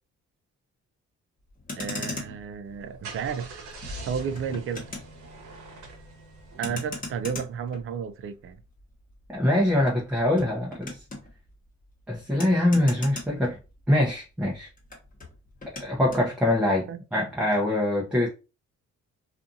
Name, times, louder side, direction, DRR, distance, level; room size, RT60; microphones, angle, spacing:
Motor vehicle (road), 1.5-14.1 14.4-16.3, left 2 dB, 25° left, 1.0 m, -41 dB
voice 1, 1.8-4.9 6.6-8.6 16.9-17.0, right 7 dB, 45° right, 0.4 m, -33 dB
Car / Engine starting, 2.6-7.3, right 2 dB, 70° right, 0.9 m, -43 dB
voice 2, 9.3-10.9 12.1-13.6 13.9-14.7 15.8-18.3, left 1 dB, 5° right, 0.6 m, -24 dB
2.5 x 2.5 x 2.6 m
cardioid pair, 90°, 30 cm